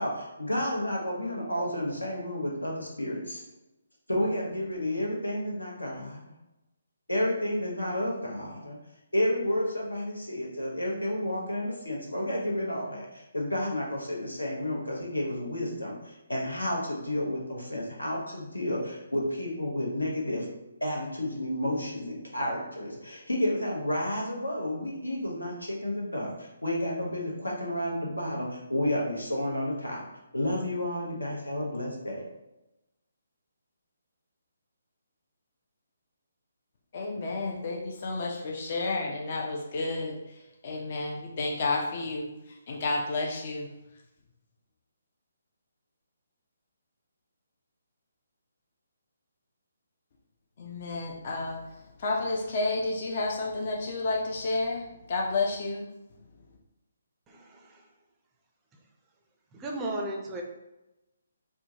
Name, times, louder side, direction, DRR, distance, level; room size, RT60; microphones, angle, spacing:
voice 1, 0.0-3.4 4.1-6.2 7.1-8.8 9.1-20.5 20.8-30.0 30.3-32.3, left 1 dB, 80° left, -2 dB, 0.9 m, -31 dB
voice 2, 36.9-43.7 50.6-55.8, left 3 dB, 45° left, -1 dB, 0.4 m, -31 dB
voice 3, 57.3-57.8 59.5-60.4, right 1 dB, 15° right, 0 dB, 0.4 m, -35 dB
3.5 x 2.1 x 2.7 m, 0.96 s
figure-of-eight pair, 140°, 0 cm